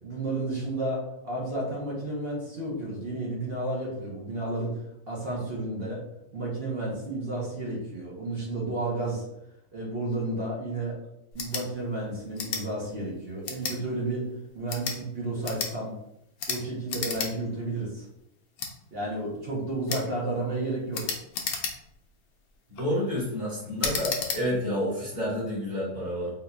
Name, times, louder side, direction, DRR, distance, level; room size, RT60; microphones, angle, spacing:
voice 1, 0.0-4.8 5.1-6.0 6.3-9.3 9.7-11.0 11.3-14.3 14.5-15.9 16.5-18.0 18.9-21.1, right 2 dB, 45° right, -4 dB, 1.0 m, -32 dB
sound 1, 11.3-11.7 12.4-12.6 13.4-13.8 14.6-15.0 15.4-15.7 16.4-16.6 16.9-17.3 17.7-17.8 18.6-18.7 19.9-20.1 20.9-22.0 22.6-22.9 23.8-24.4, left 5 dB, 80° left, 1.1 m, -32 dB
voice 2, 22.8-26.3, equal, 25° right, -6 dB, 1.3 m, -29 dB
4.0 x 2.6 x 2.3 m, 0.83 s
omnidirectional pair, 1.6 m